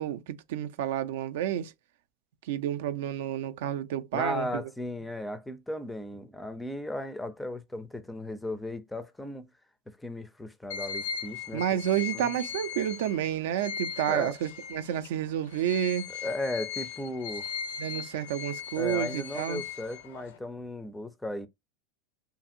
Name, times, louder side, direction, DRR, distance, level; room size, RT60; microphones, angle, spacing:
voice 1, 0.0-1.7 2.5-4.5 11.5-16.1 17.8-19.6, right 11 dB, 80° right, 0.3 m, -30 dB
voice 2, 4.1-9.5 9.9-11.8 12.1-12.3 14.1-14.3 16.2-17.6 18.8-21.5, left 1 dB, 5° left, 0.4 m, -36 dB
sound 1, 10.7-15.1 15.5-20.4, left 7 dB, 85° left, 0.5 m, -38 dB
2.7 x 2.6 x 2.5 m
supercardioid pair, 130°, 0 cm